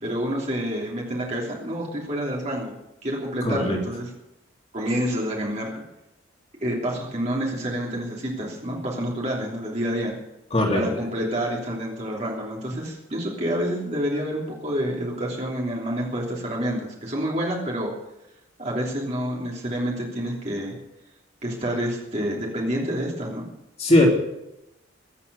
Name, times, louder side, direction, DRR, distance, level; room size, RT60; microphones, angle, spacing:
voice 1, 0.0-2.7 3.0-4.1 4.7-5.7 6.6-10.1 10.7-17.9 18.6-20.7 21.4-23.4, equal, 35° right, -3 dB, 3.2 m, -28 dB
voice 2, 3.4-3.8 10.5-10.8 23.8-24.1, left 1 dB, 30° left, 0 dB, 3.2 m, -19 dB
21.5 x 8.5 x 6.9 m, 0.89 s
head